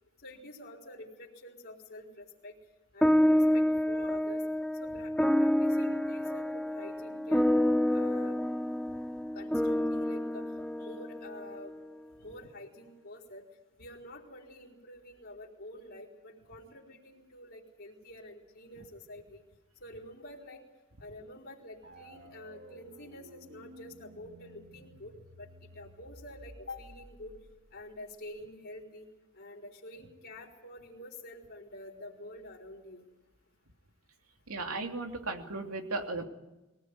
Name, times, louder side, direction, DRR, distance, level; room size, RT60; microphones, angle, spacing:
voice 1, 0.2-2.6 2.9-4.4 4.8-7.6 7.9-8.4 9.3-10.4 10.8-11.8 12.2-13.4 13.8-19.4 19.8-20.6 21.0-27.3 27.7-29.1 29.3-33.0, left 1 dB, 50° left, -1 dB, 3.9 m, -48 dB
sound 1, 3.0-11.7, equal, 5° left, 0.7 m, -28 dB
sound 2, 21.8-28.5, equal, 55° right, 2.4 m, -54 dB
voice 2, 34.5-36.2, right 3 dB, 75° right, 4 dB, 2.9 m, -36 dB
23.0 x 17.5 x 9.5 m, 1.1 s
head